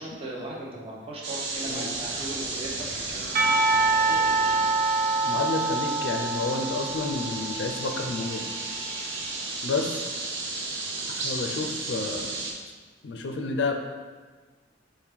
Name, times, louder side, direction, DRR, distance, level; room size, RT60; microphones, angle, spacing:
voice 1, 0.0-4.2, right 1 dB, 30° right, -4 dB, 0.7 m, -38 dB
sound 1, 1.2-12.5, right 3 dB, 90° right, 0.6 m, -34 dB
voice 2, 1.6-1.9 5.2-8.5 9.6-10.0 11.2-12.4 13.0-13.7, left 3 dB, 65° left, 4 dB, 0.4 m, -30 dB
sound 2, 1.9-5.8, right 1 dB, 5° right, 1.1 m, -44 dB
Percussion, 3.3-8.2, right 3 dB, 55° right, 0.4 m, -26 dB
4.5 x 2.1 x 3.5 m, 1.4 s
head